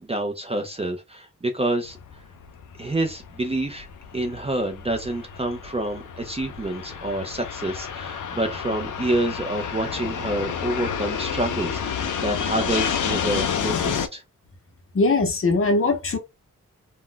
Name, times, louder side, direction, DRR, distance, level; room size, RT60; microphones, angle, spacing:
voice 1, 0.0-2.0 2.8-3.9 4.1-14.2, right 1 dB, 20° right, 0.4 m, -28 dB
Fixed-wing aircraft airplane, 1.9-14.1, left 7 dB, 80° left, 0.5 m, -30 dB
voice 2, 14.9-16.2, left 3 dB, 45° left, 0.7 m, -20 dB
2.3 x 2.1 x 3.7 m
wide cardioid pair, 135°, 31 cm